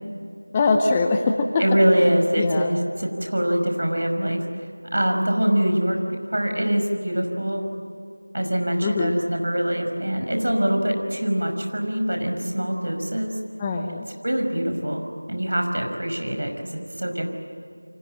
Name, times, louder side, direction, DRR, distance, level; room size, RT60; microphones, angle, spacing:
voice 1, 0.5-1.6 2.0-2.1 2.4-2.7 8.8-9.1 13.6-14.1, left 3 dB, 10° left, 4 dB, 0.7 m, -22 dB
voice 2, 1.6-4.4 4.9-6.0 6.3-7.7 8.3-13.4 14.2-17.3, equal, 50° right, 3 dB, 5.6 m, -23 dB
29.5 x 25.0 x 7.7 m, 2.4 s
figure-of-eight pair, 175°, 0 cm